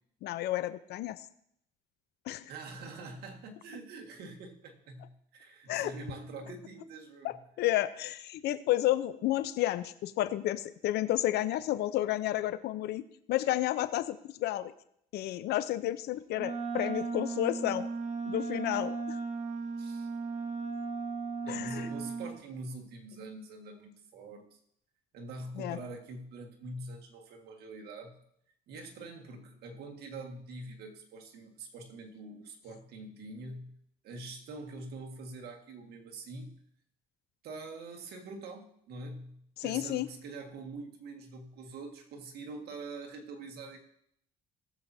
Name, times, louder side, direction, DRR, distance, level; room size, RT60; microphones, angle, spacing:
voice 1, 0.2-1.2 2.3-2.5 5.7-5.9 7.2-14.7 15.1-17.9 18.3-19.2 21.5-21.9 25.6-25.8 39.6-40.1, left 14 dB, 75° left, 13 dB, 0.7 m, -31 dB
voice 2, 2.5-7.4 19.8-20.1 21.4-24.6 25.1-28.2 28.7-33.8 34.0-36.6 37.4-43.8, right 2 dB, 70° right, 2 dB, 1.8 m, -44 dB
Wind instrument woodwind instrument, 16.4-22.4, right 4 dB, 45° right, 1.4 m, -36 dB
19.0 x 7.4 x 2.8 m, 0.70 s
cardioid pair, 110°, 17 cm